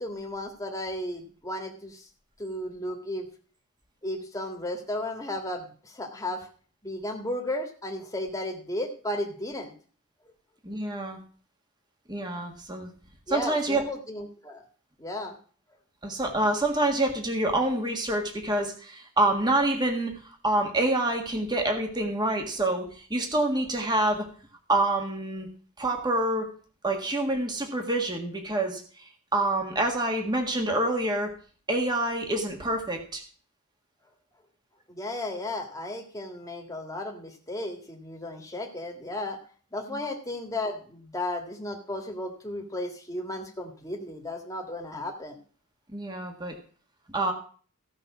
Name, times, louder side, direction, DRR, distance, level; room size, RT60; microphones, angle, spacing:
voice 1, 0.0-2.1 2.4-3.3 4.0-6.5 6.8-9.7 13.3-14.6 15.0-15.4 34.9-39.4 39.7-45.4, left 1 dB, 15° left, 2 dB, 1.8 m, -34 dB
voice 2, 10.6-11.2 12.1-12.9 13.3-13.8 16.0-24.2 24.7-25.5 25.8-26.5 26.8-28.8 29.3-31.3 31.7-33.2 39.9-40.0 45.9-46.5 47.1-47.3, right 2 dB, 20° right, 3 dB, 1.7 m, -27 dB
15.5 x 5.4 x 6.1 m, 0.43 s
head